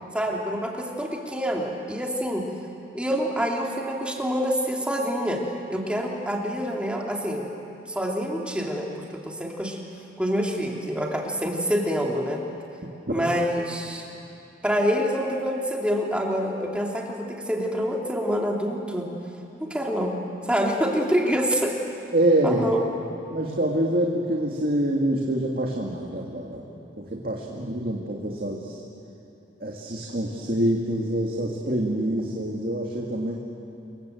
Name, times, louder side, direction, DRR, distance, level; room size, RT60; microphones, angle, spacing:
voice 1, 0.1-2.4 2.9-5.4 5.7-7.5 7.9-9.8 10.2-12.4 13.1-14.0 14.6-19.1 19.6-20.1 20.5-21.7 22.4-22.9, equal, 5° right, -1 dB, 2.8 m, -26 dB
voice 2, 22.1-22.6 23.3-26.7 27.0-28.8 29.6-33.4, right 1 dB, 50° right, -1 dB, 2.3 m, -26 dB
27.0 x 22.5 x 8.0 m, 2.9 s
head